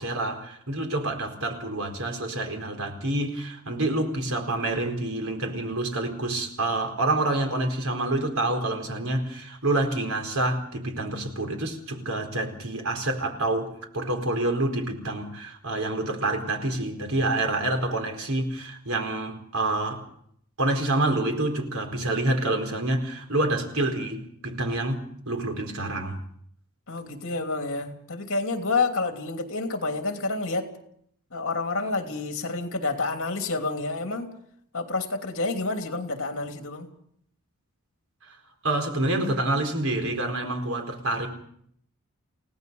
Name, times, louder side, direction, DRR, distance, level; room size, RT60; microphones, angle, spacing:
voice 1, 0.0-20.0 20.6-26.2 38.2-38.4 38.6-41.3, right 2 dB, 70° right, 4.4 m, -27 dB
voice 2, 26.9-30.7 31.3-34.3 34.7-36.9, left 3 dB, 60° left, 3.0 m, -29 dB
29.5 x 17.5 x 5.5 m
head